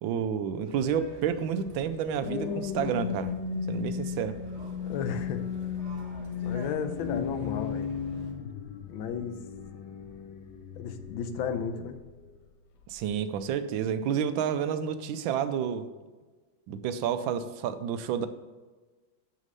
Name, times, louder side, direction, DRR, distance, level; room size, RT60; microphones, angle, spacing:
voice 1, 0.0-3.4 3.7-4.4 12.9-15.9 16.7-18.3, right 8 dB, 85° right, 11 dB, 1.4 m, -30 dB
sound 1, 0.6-8.3, right 2 dB, 35° right, 1.4 m, -47 dB
sound 2, 1.7-12.3 12.8-13.1, left 7 dB, 65° left, 1.3 m, -36 dB
voice 2, 4.8-5.5 6.4-7.9 8.9-9.4 10.7-12.0, left 6 dB, 90° left, 8 dB, 1.5 m, -33 dB
6.5 x 6.3 x 5.4 m, 1.3 s
omnidirectional pair, 2.1 m